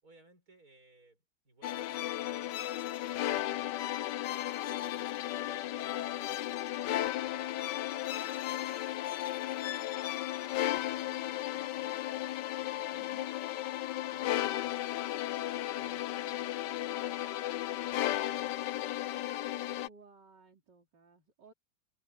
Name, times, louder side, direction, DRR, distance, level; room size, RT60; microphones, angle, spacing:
voice 1, 0.0-3.8 5.1-10.2 10.5-12.1 12.6-13.1 14.1-18.9, right 1 dB, 50° right, 7.2 m, -62 dB
sound 1, 1.6-19.9, left 13 dB, 75° left, 1.3 m, -35 dB
voice 2, 4.7-5.1 11.0-11.9 13.0-13.3 19.9-21.5, right 6 dB, 70° right, 3.7 m, -59 dB
omnidirectional pair, 2.0 m